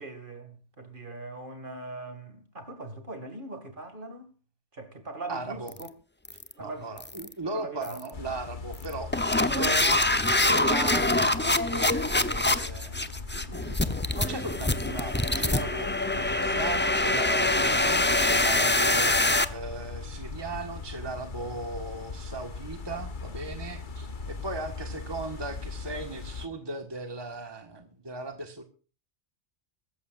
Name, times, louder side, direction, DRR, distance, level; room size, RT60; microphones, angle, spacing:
voice 1, 0.0-4.3 4.7-5.9 6.6-6.9 7.4-8.0 9.5-10.0, right 2 dB, 45° right, 2.4 m, -40 dB
voice 2, 5.3-5.7 6.6-10.0 10.4-13.0 13.3-13.8 14.1-28.6, right 2 dB, 20° right, 1.6 m, -37 dB
sound 1, 5.7-5.9 6.2-6.5 7.0-7.3 7.8-8.1 8.7-19.4, left 2 dB, 10° left, 0.7 m, -25 dB
sound 2, 8.1-26.5, left 4 dB, 45° left, 1.3 m, -40 dB
23.0 x 14.0 x 2.5 m
omnidirectional pair, 1.2 m